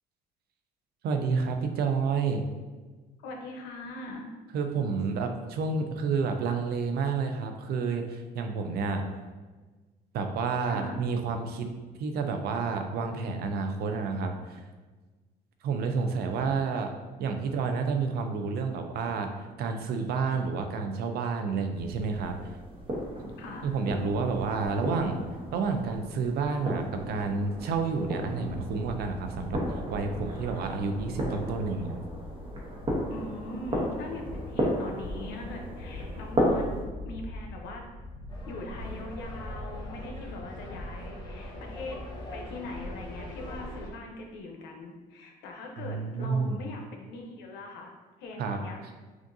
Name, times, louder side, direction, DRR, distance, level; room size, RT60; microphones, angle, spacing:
voice 1, 1.0-2.4 4.5-9.0 10.1-11.7 12.0-14.6 15.6-16.9 17.2-22.5 23.6-25.2 25.5-32.0 45.8-46.6 48.4-48.6, right 4 dB, 70° right, 5 dB, 0.6 m, -30 dB
voice 2, 3.2-4.3 10.7-11.0 23.4-23.8 33.1-37.8 38.5-42.0 42.3-47.9 48.2-48.8, left 2 dB, 90° left, 2 dB, 0.8 m, -41 dB
sound 1, 21.7-36.8, equal, 30° right, 1.0 m, -34 dB
sound 2, 28.4-43.6, left 1 dB, 50° left, 0.4 m, -43 dB
sound 3, 38.3-43.9, equal, 25° left, 1.1 m, -42 dB
6.1 x 2.5 x 2.6 m, 1.3 s
cardioid pair, 110°, 17 cm